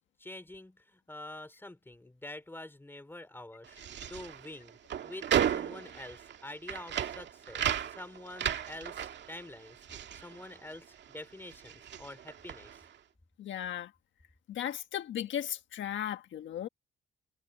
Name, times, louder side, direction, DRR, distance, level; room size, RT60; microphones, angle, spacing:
voice 1, 0.2-3.8 4.1-4.8 5.0-9.8 10.1-12.8, left 1 dB, 10° left, 4.8 m, -47 dB
sound 1, 3.6-11.2 11.4-12.9, right 9 dB, 65° right, 2.1 m, -35 dB
voice 2, 13.4-13.9 14.5-16.7, left 10 dB, 70° left, 1.5 m, -36 dB
cardioid pair, 90°, 20 cm